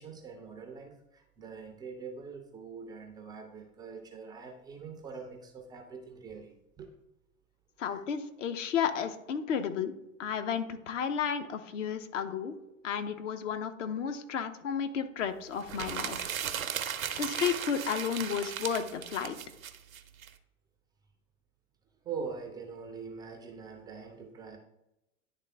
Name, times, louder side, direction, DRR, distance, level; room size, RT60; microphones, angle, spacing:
voice 1, 0.0-7.0 7.8-8.0 22.0-24.6, right 5 dB, 10° right, 3 dB, 0.3 m, -43 dB
voice 2, 7.8-9.9 10.2-12.6 12.8-16.3 17.2-19.4, left 7 dB, 65° left, 8 dB, 0.8 m, -32 dB
sound 1, 15.6-20.3, right 9 dB, 80° right, 0.6 m, -36 dB
10.0 x 3.4 x 3.3 m, 0.90 s
figure-of-eight pair, 85°, 41 cm